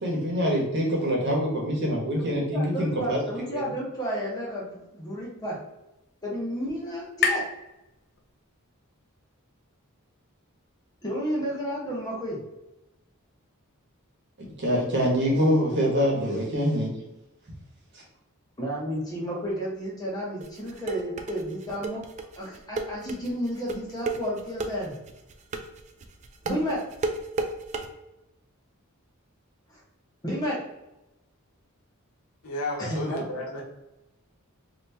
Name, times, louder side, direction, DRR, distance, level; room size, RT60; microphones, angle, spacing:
voice 1, 0.0-3.2 3.5-3.6 14.6-16.9, equal, 55° right, -3 dB, 1.2 m, -25 dB
voice 2, 2.5-5.6 6.2-7.4 11.0-12.4 18.6-22.0 22.3-24.9 26.4-26.8 29.7-29.8 30.2-30.6 32.8-33.2, equal, 20° left, -5 dB, 1.1 m, -31 dB
sound 1, 4.9-8.6, left 5 dB, 45° left, 0.5 m, -34 dB
sound 2, 20.4-27.9, right 3 dB, 35° right, 0.3 m, -32 dB
voice 3, 32.4-33.6, left 1 dB, 80° left, -2 dB, 1.0 m, -32 dB
2.8 x 2.8 x 3.4 m, 0.94 s
head